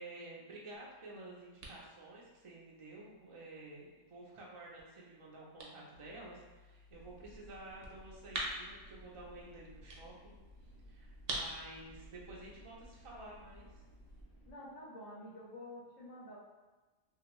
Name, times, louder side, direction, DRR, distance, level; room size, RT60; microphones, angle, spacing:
voice 1, 0.0-10.3 10.9-13.8, right 2 dB, 50° right, -4 dB, 0.3 m, -51 dB
sound 1, 0.7-14.2, right 1 dB, 70° right, 0.9 m, -49 dB
sound 2, 6.9-14.5, right 1 dB, 20° left, 0.6 m, -58 dB
voice 2, 14.5-16.4, left 1 dB, 80° left, -5 dB, 1.1 m, -49 dB
2.7 x 2.5 x 3.0 m, 1.2 s
omnidirectional pair, 1.3 m